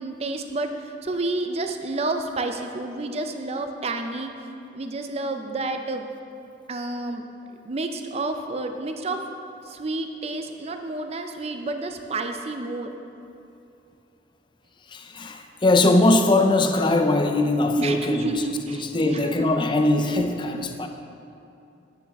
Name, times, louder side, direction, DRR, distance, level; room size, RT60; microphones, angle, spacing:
voice 1, 0.0-4.3 4.7-6.1 6.7-7.3 7.6-9.3 9.6-12.9 17.8-19.5, right 2 dB, 35° right, 6 dB, 0.5 m, -30 dB
voice 2, 14.9-18.4 18.9-20.9, left 2 dB, 25° left, 6 dB, 0.5 m, -21 dB
9.0 x 8.6 x 3.5 m, 2.8 s
head